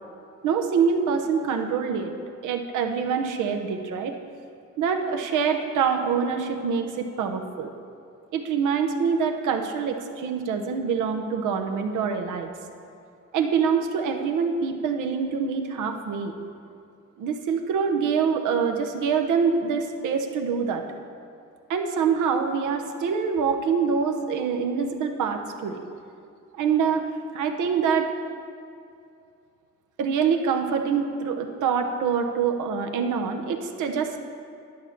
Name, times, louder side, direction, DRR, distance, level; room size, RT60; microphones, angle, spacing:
voice 1, 0.4-2.1 2.4-4.2 4.8-7.7 8.3-12.5 13.3-16.3 17.2-20.8 21.7-25.8 26.5-27.1 27.3-28.1 30.0-34.2, right 6 dB, 80° right, 5 dB, 0.9 m, -25 dB
10.5 x 4.6 x 7.2 m, 2.4 s
cardioid pair, 90°, 30 cm